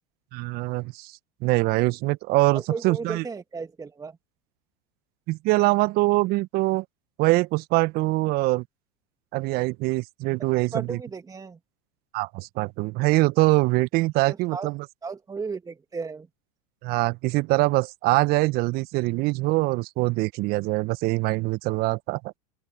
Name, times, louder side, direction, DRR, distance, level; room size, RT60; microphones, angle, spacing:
voice 1, 0.3-1.1 1.4-3.3 5.3-6.8 7.2-8.6 9.3-11.0 12.1-14.8 16.8-22.3, right 21 dB, 50° right, 1.2 m, -23 dB
voice 2, 2.5-4.2 10.7-11.6 14.3-14.7 15.0-16.3, right 4 dB, 15° right, 2.3 m, -35 dB
open air
hypercardioid pair, 90°, 20 cm